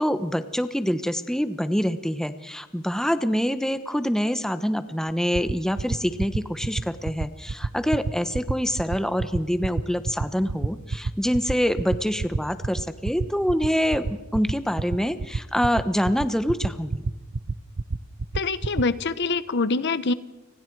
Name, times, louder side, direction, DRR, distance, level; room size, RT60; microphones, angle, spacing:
voice 1, 0.0-17.1, equal, 5° left, 10 dB, 1.0 m, -25 dB
sound 1, 5.1-18.8, right 3 dB, 70° right, 0.8 m, -27 dB
voice 2, 18.3-20.1, left 3 dB, 55° left, 14 dB, 0.9 m, -25 dB
30.0 x 26.0 x 4.7 m, 1.0 s
head